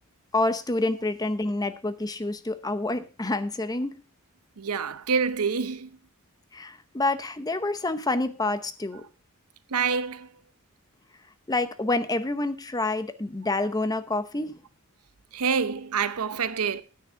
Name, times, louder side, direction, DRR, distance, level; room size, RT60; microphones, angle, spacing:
voice 1, 0.3-4.0 6.5-9.0 11.5-14.6, left 2 dB, 15° left, 0.7 m, -28 dB
voice 2, 4.6-5.9 9.7-10.3 15.3-16.8, right 6 dB, 85° right, 0.8 m, -27 dB
9.9 x 9.4 x 4.5 m
head